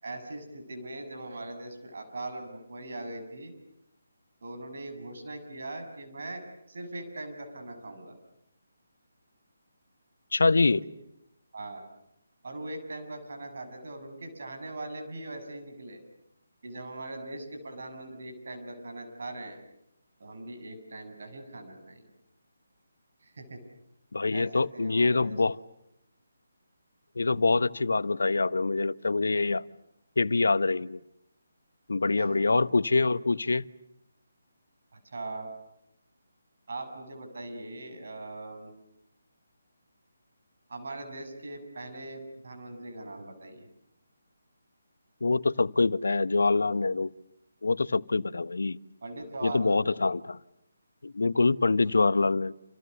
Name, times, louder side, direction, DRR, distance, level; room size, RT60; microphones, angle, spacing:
voice 1, 0.0-3.5 4.4-8.1 10.8-10.9 11.5-11.9 12.4-16.0 16.6-19.6 20.2-22.1 23.2-23.6 24.3-25.4 32.2-32.6 34.9-35.5 36.7-38.7 40.7-43.7 49.0-50.0, right 2 dB, 55° right, 5 dB, 7.6 m, -40 dB
voice 2, 10.3-10.8 24.1-25.6 27.2-29.6 30.2-31.0 31.9-33.6 45.2-47.1 47.6-48.8 49.4-50.4 51.0-52.5, left 3 dB, 70° left, 17 dB, 1.0 m, -25 dB
29.0 x 28.5 x 6.8 m, 0.79 s
figure-of-eight pair, 150°, 0 cm